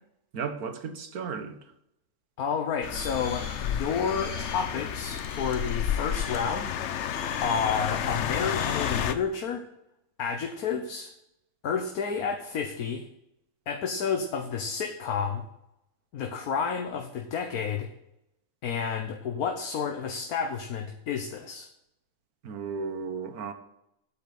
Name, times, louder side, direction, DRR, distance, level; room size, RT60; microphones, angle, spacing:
voice 1, 0.3-1.6 22.4-23.5, right 5 dB, 85° right, 1.7 m, -34 dB
voice 2, 2.4-6.7 7.4-9.6 10.2-11.1 11.6-13.1 13.7-15.4 16.1-17.9 18.6-21.7, left 6 dB, 90° left, 1.5 m, -30 dB
sound 1, 2.8-9.1, left 9 dB, 60° left, 0.9 m, -31 dB
sound 2, 2.9-9.2, left 2 dB, 40° left, 2.0 m, -45 dB
8.6 x 8.3 x 8.1 m
omnidirectional pair, 1.5 m